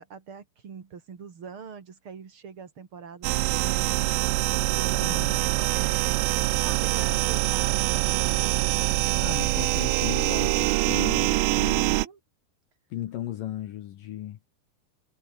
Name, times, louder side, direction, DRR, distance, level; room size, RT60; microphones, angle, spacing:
voice 1, 0.0-4.0 4.7-6.0 6.6-9.8 11.4-12.2, right 6 dB, 40° right, 2.0 m, -43 dB
sound 1, 3.2-12.1, right 21 dB, 90° right, 3.4 m, -24 dB
voice 2, 4.9-5.6 9.2-11.9 12.9-14.4, left 12 dB, 80° left, 1.9 m, -36 dB
omnidirectional pair, 5.8 m